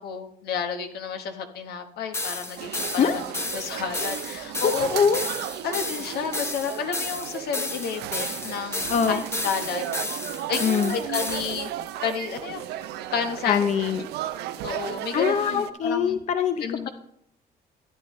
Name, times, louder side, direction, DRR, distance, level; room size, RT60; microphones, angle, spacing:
voice 1, 0.0-3.2 3.5-4.9 5.6-9.9 10.5-10.6 10.9-11.7 12.0-12.6 13.1-13.6 14.6-16.2 16.6-16.9, left 7 dB, 70° left, 6 dB, 1.2 m, -31 dB
sound 1, 2.1-11.7, left 2 dB, 15° left, 1.0 m, -32 dB
sound 2, 2.6-15.7, right 12 dB, 75° right, 0.5 m, -34 dB
voice 2, 4.6-5.2 8.9-9.2 10.6-11.0 13.5-14.0 15.1-16.9, left 7 dB, 45° left, 9 dB, 0.6 m, -23 dB
13.0 x 9.3 x 3.1 m, 0.74 s
cardioid pair, 110°, 17 cm